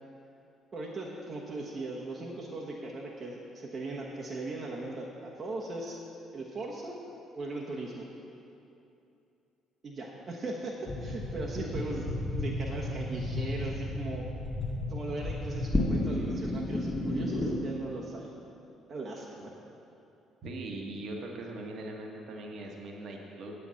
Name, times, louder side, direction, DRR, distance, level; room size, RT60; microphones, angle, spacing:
voice 1, 0.7-6.0 6.3-7.0 7.4-8.1 9.8-14.2 14.9-18.3 18.9-19.5, right 2 dB, 40° right, -4 dB, 1.2 m, -38 dB
sound 1, 10.8-17.5, left 1 dB, 15° left, 1.8 m, -32 dB
voice 2, 11.6-12.0 20.4-23.5, right 2 dB, 55° right, 1 dB, 1.4 m, -40 dB
8.7 x 8.2 x 5.7 m, 2.8 s
hypercardioid pair, 50°, 0 cm